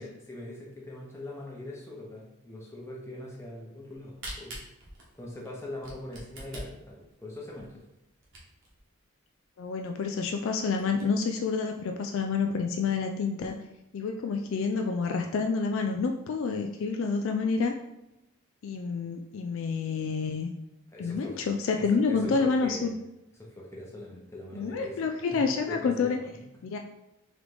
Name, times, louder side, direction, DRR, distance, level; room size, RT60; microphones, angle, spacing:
voice 1, 0.0-4.6 5.1-7.8 20.9-21.4 21.8-22.9 23.3-25.0 25.3-26.4 26.7-26.8, left 1 dB, 10° left, -4 dB, 0.8 m, -42 dB
Camera, 3.8-8.8 9.3-9.4 9.6-9.7 10.2-10.3 10.6-11.0, right 1 dB, 55° right, 1.1 m, -44 dB
voice 2, 9.6-13.6 13.9-17.7 18.6-20.5 21.0-22.9 24.5-26.2 26.6-26.8, left 4 dB, 60° left, 4 dB, 0.3 m, -28 dB
3.8 x 3.3 x 3.3 m, 0.92 s
head